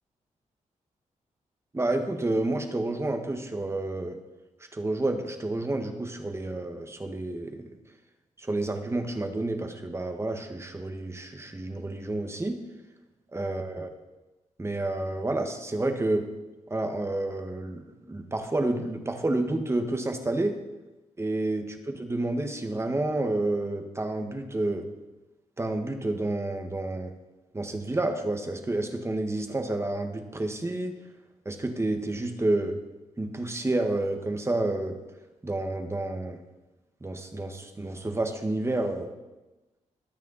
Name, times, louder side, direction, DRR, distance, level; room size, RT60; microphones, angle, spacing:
voice 1, 1.7-4.2 4.7-7.7 8.4-12.6 13.3-13.9 14.6-16.3 16.7-20.6 21.2-24.9 25.6-27.1 27.5-31.0 31.5-32.8 33.2-35.0 35.4-36.4 37.0-39.1, right 2 dB, 20° right, 5 dB, 1.7 m, -29 dB
22.5 x 9.1 x 4.2 m, 1.1 s
cardioid pair, 105°, 14 cm